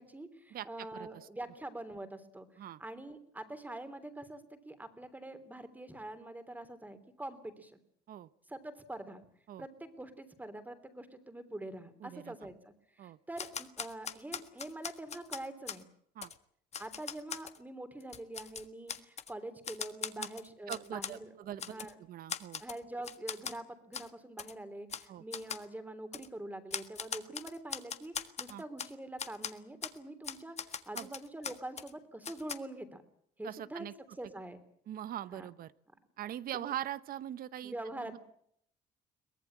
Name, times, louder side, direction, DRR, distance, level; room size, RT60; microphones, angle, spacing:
voice 1, 0.0-7.8 8.5-9.2 9.6-15.8 16.8-21.3 21.6-21.9 22.6-33.0 33.4-34.6 35.3-35.5 36.2-36.8 37.6-38.2, right 1 dB, 10° right, 10 dB, 3.3 m, -45 dB
voice 2, 0.5-1.3 2.6-2.8 8.1-8.3 9.5-9.7 12.0-12.3 13.0-13.2 16.2-16.3 20.2-20.3 20.7-22.6 25.1-25.2 28.5-28.6 30.9-31.1 33.4-33.9 34.9-35.7 36.2-37.7 38.0-38.2, right 11 dB, 60° right, 16 dB, 1.0 m, -42 dB
Typewriter, 13.4-15.8 16.2-16.3 16.7-17.6 18.0-19.3 19.6-21.2 21.6-21.9 22.3-22.8 23.0-23.6 23.9-24.1 24.4-24.5 24.9-25.1 25.3-25.6 26.1-26.3 26.7-28.9 29.2-29.5 29.8-30.0 30.2-31.9 32.2-32.6, left 7 dB, 40° left, 1.6 m, -40 dB
23.0 x 18.5 x 8.7 m, 0.70 s
cardioid pair, 110°, 17 cm